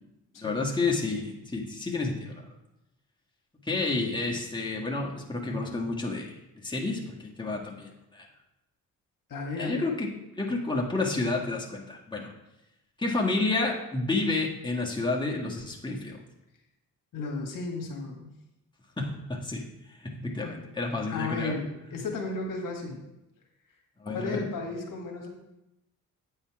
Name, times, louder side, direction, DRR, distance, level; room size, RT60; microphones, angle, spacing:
voice 1, 0.4-2.4 3.6-6.3 6.6-8.3 9.6-10.1 10.3-12.3 13.0-16.2 19.0-19.6 20.0-21.6 24.0-24.5, left 3 dB, 15° left, -1 dB, 1.8 m, -30 dB
voice 2, 9.3-9.9 17.1-18.3 21.1-23.0 24.1-25.3, left 3 dB, 60° left, 1 dB, 1.7 m, -34 dB
8.8 x 5.6 x 4.8 m, 0.91 s
cardioid pair, 65°, 36 cm